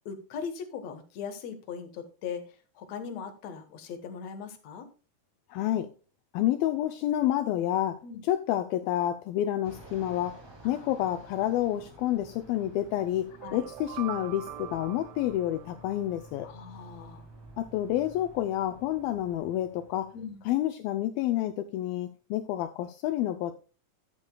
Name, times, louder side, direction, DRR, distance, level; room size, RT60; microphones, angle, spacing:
voice 1, 0.1-2.4 2.8-4.9 8.0-8.2 10.6-10.9 13.4-13.6 16.4-17.2 20.1-20.4, left 6 dB, 60° left, 6 dB, 1.9 m, -39 dB
voice 2, 5.5-5.9 6.3-10.4 10.6-13.3 13.5-16.5 17.6-20.1 20.5-23.6, left 12 dB, 80° left, 8 dB, 2.2 m, -29 dB
Fixed-wing aircraft airplane, 9.6-20.5, right 1 dB, 30° right, 0.4 m, -52 dB
sound 1, 13.3-16.4, right 12 dB, 80° right, 2.1 m, -43 dB
13.5 x 8.1 x 2.3 m, 0.34 s
omnidirectional pair, 4.7 m